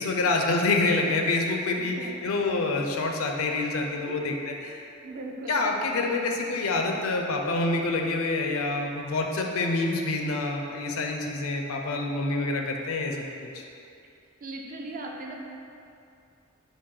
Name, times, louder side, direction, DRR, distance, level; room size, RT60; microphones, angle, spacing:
voice 1, 0.0-4.8 5.5-13.2 13.5-13.6, left 2 dB, 75° left, 2 dB, 0.4 m, -27 dB
voice 2, 1.8-2.1 4.1-4.4 5.0-5.6 14.4-15.3, right 2 dB, 40° right, 0 dB, 0.4 m, -38 dB
4.6 x 2.6 x 3.7 m, 2.6 s
head